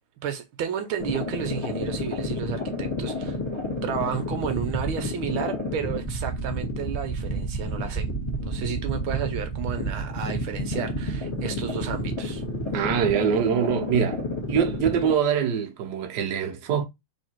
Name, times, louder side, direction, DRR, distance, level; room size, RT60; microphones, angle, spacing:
voice 1, 0.2-3.4 3.8-8.1 8.4-12.4, right 7 dB, 80° right, 1.6 m, -32 dB
sound 1, 1.0-15.1, equal, 15° left, 1.7 m, -30 dB
voice 2, 12.7-14.2 14.5-16.8, right 7 dB, 60° right, 1.4 m, -24 dB
3.8 x 3.2 x 4.4 m
omnidirectional pair, 2.3 m